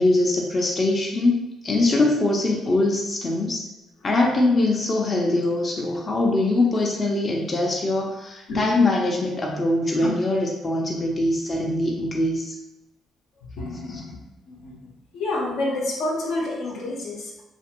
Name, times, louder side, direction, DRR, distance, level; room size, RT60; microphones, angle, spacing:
voice 1, 0.0-3.6 4.0-12.5 13.9-14.0, left 2 dB, 40° left, -1 dB, 0.5 m, -22 dB
voice 2, 13.6-14.2 14.5-14.8 15.1-17.4, left 2 dB, 80° left, -3 dB, 0.7 m, -28 dB
2.5 x 2.5 x 2.9 m, 0.94 s
supercardioid pair, 70°, 0 cm